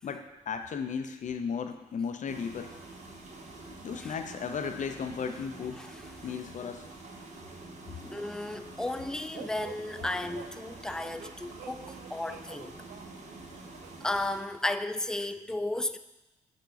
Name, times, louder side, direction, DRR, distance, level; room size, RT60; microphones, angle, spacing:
voice 1, 0.0-2.7 3.8-5.8 6.2-6.9, left 6 dB, 45° left, 7 dB, 0.6 m, -35 dB
sound 1, 2.3-14.4, right 2 dB, 40° right, 1.1 m, -47 dB
voice 2, 8.0-12.8 14.0-16.0, left 1 dB, 5° left, 11 dB, 0.3 m, -34 dB
sound 2, 9.3-14.2, right 9 dB, 55° right, 0.5 m, -49 dB
6.5 x 4.4 x 3.9 m, 1.0 s
hypercardioid pair, 45°, 18 cm